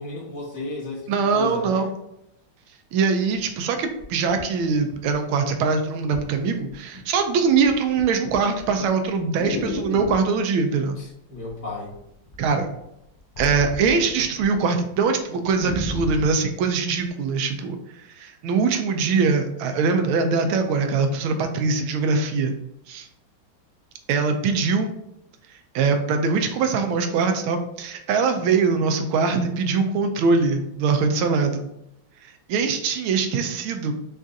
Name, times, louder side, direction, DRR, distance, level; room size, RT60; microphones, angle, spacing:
voice 1, 0.0-1.9 11.0-12.0, left 2 dB, 15° left, -6 dB, 0.7 m, -33 dB
voice 2, 1.1-1.9 2.9-10.9 12.4-12.7 13.4-17.8 18.2-22.5 22.9-23.1 24.1-24.9 25.7-31.6 32.2-33.9, right 5 dB, 80° right, 6 dB, 1.4 m, -22 dB
sound 1, 3.3-3.4 4.0-5.5 6.1-6.3 6.7-7.2 7.5-10.3 11.4-12.0 12.3-14.6 14.9-15.0 15.3-16.4 17.1-17.2, left 2 dB, 65° left, 1.3 m, -34 dB
6.1 x 2.5 x 2.7 m, 0.80 s
omnidirectional pair, 2.3 m